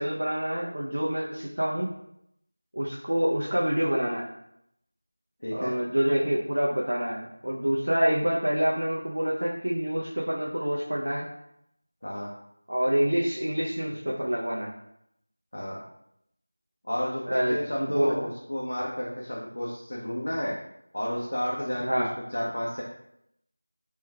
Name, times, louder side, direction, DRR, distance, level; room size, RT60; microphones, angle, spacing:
voice 1, 0.0-1.9 2.8-4.3 5.5-11.3 12.7-14.7 17.3-18.3 21.8-22.1, equal, 80° right, -5 dB, 0.6 m, -27 dB
voice 2, 5.4-5.7 12.0-12.3 15.5-15.8 16.8-20.6 20.9-22.8, equal, 60° left, -4 dB, 0.6 m, -31 dB
3.2 x 3.1 x 2.3 m, 0.77 s
figure-of-eight pair, 180°, 0 cm